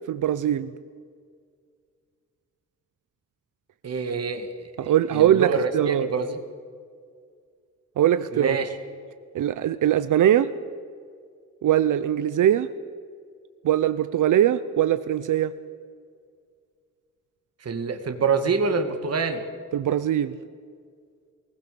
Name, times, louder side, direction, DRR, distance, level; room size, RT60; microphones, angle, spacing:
voice 1, 0.1-0.7 4.8-6.1 8.0-8.6 9.3-10.5 11.6-12.7 13.6-15.5 19.7-20.3, right 11 dB, 80° right, 13 dB, 0.7 m, -21 dB
voice 2, 3.8-6.4 8.3-8.7 17.6-19.4, right 4 dB, 55° right, 7 dB, 2.2 m, -26 dB
23.5 x 19.5 x 7.0 m, 2.1 s
wide cardioid pair, 115°, 30 cm